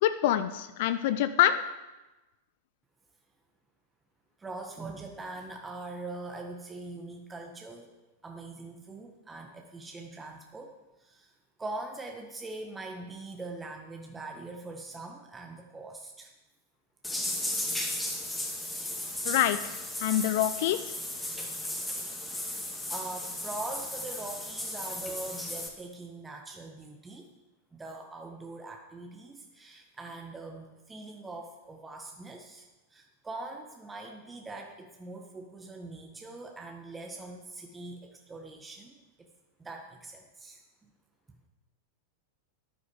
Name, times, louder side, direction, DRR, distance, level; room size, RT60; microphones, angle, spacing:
voice 1, 0.0-1.6 19.2-19.6 20.0-20.9, left 12 dB, 50° left, 12 dB, 0.6 m, -25 dB
voice 2, 4.4-7.9 8.2-11.3 11.6-16.3 22.3-27.3 27.7-32.6 32.9-39.3 39.6-40.9, right 2 dB, 15° right, 2 dB, 1.4 m, -42 dB
sound 1, 17.0-25.7, left 1 dB, 5° left, 2.3 m, -35 dB
13.5 x 11.5 x 4.8 m, 1.1 s
figure-of-eight pair, 90°, 0 cm